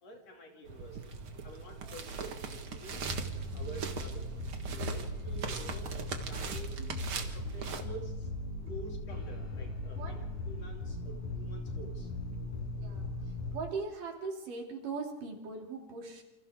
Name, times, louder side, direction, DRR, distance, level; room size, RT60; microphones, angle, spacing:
voice 1, 0.0-3.1 3.5-4.3 4.7-6.8 7.1-8.3 8.7-12.4, right 2 dB, 50° left, 1 dB, 3.8 m, -49 dB
sound 1, 0.7-7.8, right 5 dB, 50° right, 2.1 m, -41 dB
voice 2, 1.8-2.2 6.8-7.2 8.5-8.8 9.9-10.2 12.8-16.2, right 4 dB, 75° right, 0 dB, 4.5 m, -41 dB
sound 2, 2.9-13.6, left 1 dB, 75° left, 5.8 m, -38 dB
28.5 x 26.5 x 3.7 m, 1.0 s
omnidirectional pair, 3.7 m